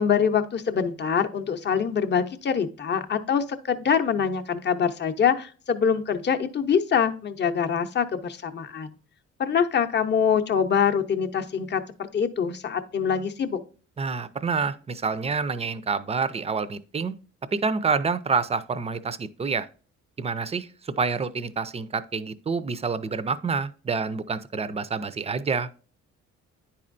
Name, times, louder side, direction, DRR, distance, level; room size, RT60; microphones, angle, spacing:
voice 1, 0.0-8.9 9.4-13.6, left 7 dB, 35° left, 0.7 m, -24 dB
voice 2, 14.0-17.1 17.5-19.7 20.2-20.7 21.0-25.7, right 5 dB, 20° right, 0.5 m, -27 dB
10.0 x 4.3 x 2.5 m
cardioid pair, 90°, 30 cm